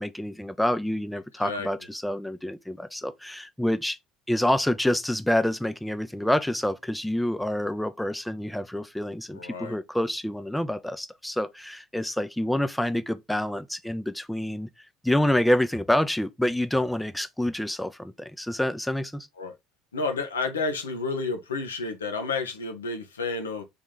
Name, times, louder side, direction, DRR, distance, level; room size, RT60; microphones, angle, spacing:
voice 1, 0.0-4.0 4.3-19.3, left 1 dB, 5° left, 0.5 m, -27 dB
voice 2, 9.3-9.8 19.4-19.5 19.9-23.6, left 3 dB, 85° left, 0.7 m, -30 dB
3.4 x 3.1 x 3.7 m
hypercardioid pair, 65°, 0 cm